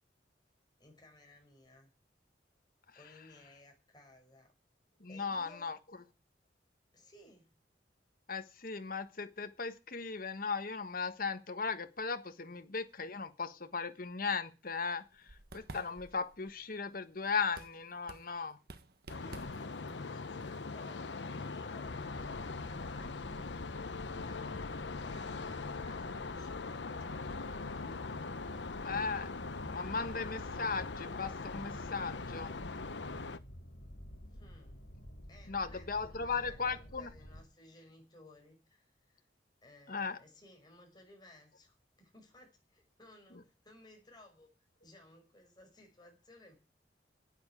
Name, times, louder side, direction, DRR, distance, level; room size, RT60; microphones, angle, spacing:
voice 1, 0.8-1.9 2.9-4.5 5.1-5.8 6.9-7.5 12.5-12.6 19.1-23.5 24.2-28.2 34.3-34.8 35.3-39.3 39.6-44.5 44.8-46.6, left 1 dB, 25° left, 5.5 m, -59 dB
voice 2, 5.0-5.8 8.3-15.0 15.5-18.6 28.8-29.3 29.7-32.5 35.5-37.1 39.9-40.2, left 5 dB, 55° left, 1.4 m, -37 dB
sound 1, 14.7-21.3, right 2 dB, 60° right, 1.4 m, -54 dB
sound 2, 19.1-33.4, left 4 dB, 90° left, 0.9 m, -41 dB
sound 3, 21.8-37.4, equal, 70° left, 3.5 m, -51 dB
9.9 x 9.0 x 9.8 m
head